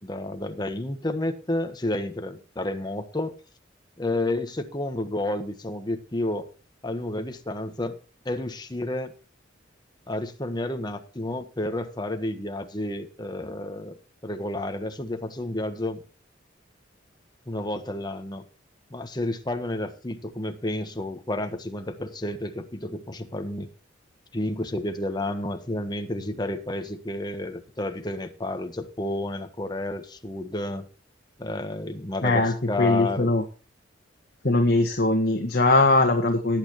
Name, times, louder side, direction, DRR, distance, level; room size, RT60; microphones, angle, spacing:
voice 1, 0.0-3.3 4.0-6.5 6.8-8.0 8.2-9.1 10.1-14.0 14.2-16.0 17.5-18.4 18.9-23.7 24.3-30.8 31.4-33.3, left 1 dB, 25° left, 7 dB, 1.3 m, -31 dB
voice 2, 32.2-33.4 34.4-36.6, left 2 dB, 55° left, 2 dB, 1.7 m, -21 dB
18.5 x 8.9 x 3.1 m, 0.36 s
head